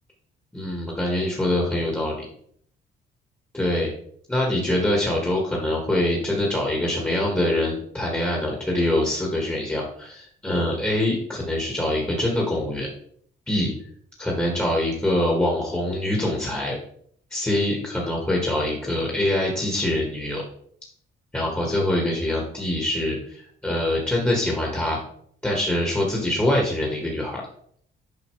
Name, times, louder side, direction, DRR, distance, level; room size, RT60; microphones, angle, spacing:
voice 1, 0.5-2.3 3.5-3.9 4.3-12.9 13.5-13.7 14.2-16.8 17.3-20.4 21.3-25.0 25.4-27.4, left 1 dB, 10° left, -2 dB, 1.8 m, -24 dB
8.0 x 4.9 x 3.3 m, 0.63 s
cardioid pair, 90°, 20 cm